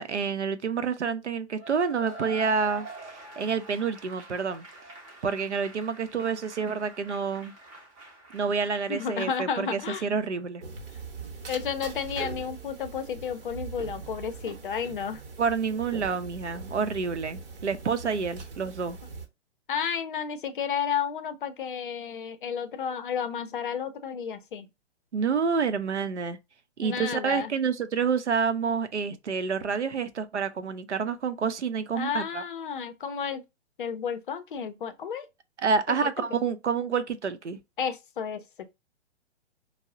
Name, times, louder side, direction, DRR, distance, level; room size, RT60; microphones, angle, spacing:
voice 1, 0.0-4.6 5.2-7.5 8.3-10.6 15.4-19.0 25.1-26.4 26.8-32.4 35.6-37.6, right 5 dB, 80° right, 0.6 m, -28 dB
Cheering / Applause / Crowd, 1.6-9.2, right 2 dB, 20° right, 0.6 m, -45 dB
voice 2, 8.9-10.1 11.5-15.2 19.7-24.7 26.8-27.5 31.9-33.4 33.8-35.3 36.2-36.4 37.8-38.7, left 7 dB, 50° left, 0.5 m, -32 dB
sound 1, 10.6-19.3, right 4 dB, 55° right, 0.9 m, -41 dB
4.4 x 2.0 x 2.4 m
figure-of-eight pair, 120°, 34 cm